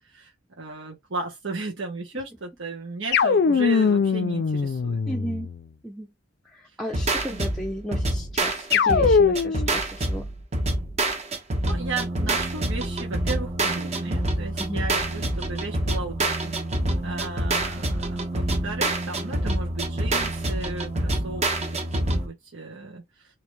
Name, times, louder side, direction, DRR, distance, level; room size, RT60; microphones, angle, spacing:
voice 1, 0.6-5.0 7.3-7.4 11.6-16.6 17.0-23.3, right 3 dB, 85° right, 1.2 m, -35 dB
sound 1, 3.1-5.6 8.7-9.7, left 5 dB, 55° left, 0.4 m, -21 dB
voice 2, 5.1-5.5 5.8-6.1 6.4-10.3 14.6-14.8, equal, 5° left, 0.5 m, -34 dB
sound 2, 6.9-22.3, right 1 dB, 35° right, 0.9 m, -26 dB
3.2 x 2.9 x 3.2 m
head